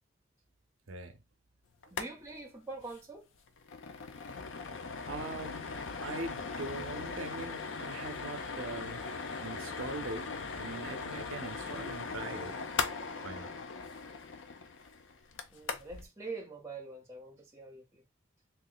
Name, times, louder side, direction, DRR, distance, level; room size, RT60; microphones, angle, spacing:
voice 1, 0.9-1.2 5.1-9.1 9.4-12.6 13.2-13.6, right 2 dB, 80° right, 0.6 m, -42 dB
sound 1, 1.8-2.1 2.4-2.5 2.8-3.0 3.4-16.1, left 4 dB, 70° left, 0.5 m, -39 dB
voice 2, 1.9-3.3 15.5-18.0, right 3 dB, 15° right, 0.9 m, -44 dB
3.1 x 2.6 x 3.9 m
head